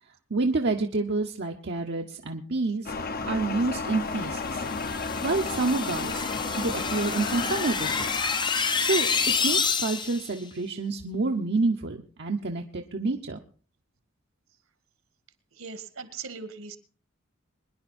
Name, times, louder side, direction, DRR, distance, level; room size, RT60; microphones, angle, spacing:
voice 1, 0.3-2.9 3.3-4.6 5.2-6.3 6.6-8.2 8.8-9.1 9.4-13.4, right 3 dB, 55° right, 3 dB, 1.0 m, -28 dB
sound 1, 2.9-9.6, left 4 dB, 45° left, 1.0 m, -33 dB
sound 2, 4.3-10.3, left 5 dB, 20° left, 0.7 m, -28 dB
voice 2, 15.6-16.8, right 5 dB, 70° right, 11 dB, 1.9 m, -39 dB
23.0 x 10.5 x 4.3 m, 0.41 s
head